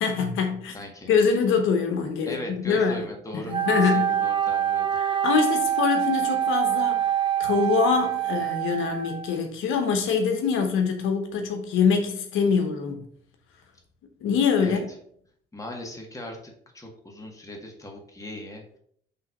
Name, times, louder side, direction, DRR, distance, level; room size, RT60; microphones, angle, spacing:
voice 1, 0.0-0.8 1.1-3.1 3.3-4.2 5.0-7.1 7.4-13.0 14.2-14.9, left 6 dB, 85° left, 0.9 m, -24 dB
voice 2, 0.7-1.1 2.3-4.9 14.6-14.8 15.5-16.4 16.7-18.8, left 1 dB, 15° left, 1.7 m, -38 dB
Wind instrument woodwind instrument, 3.5-9.4, right 10 dB, 25° right, 0.5 m, -25 dB
5.6 x 3.3 x 5.2 m
cardioid pair, 90°, 20 cm